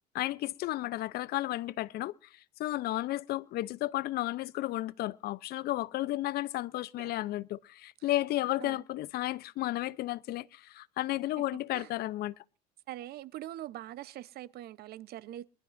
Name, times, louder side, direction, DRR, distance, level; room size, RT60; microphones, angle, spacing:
voice 1, 0.1-2.1 2.6-12.3, left 16 dB, 50° left, 0.7 m, -33 dB
voice 2, 12.9-15.5, right 13 dB, 50° right, 0.9 m, -43 dB
23.0 x 13.0 x 2.6 m
hypercardioid pair, 80°, 21 cm